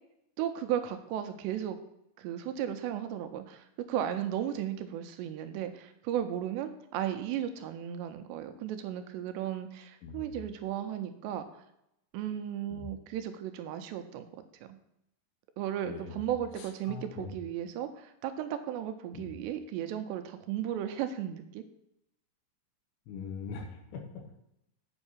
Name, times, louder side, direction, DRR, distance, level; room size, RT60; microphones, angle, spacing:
voice 1, 0.4-1.8 2.2-11.6 12.1-14.4 15.6-21.6, right 10 dB, 85° right, 8 dB, 2.7 m, -35 dB
voice 2, 15.8-16.3 16.6-17.3 19.1-19.3 23.1-24.3, left 5 dB, 85° left, 3 dB, 3.6 m, -42 dB
8.0 x 5.4 x 7.2 m, 0.81 s
omnidirectional pair, 5.1 m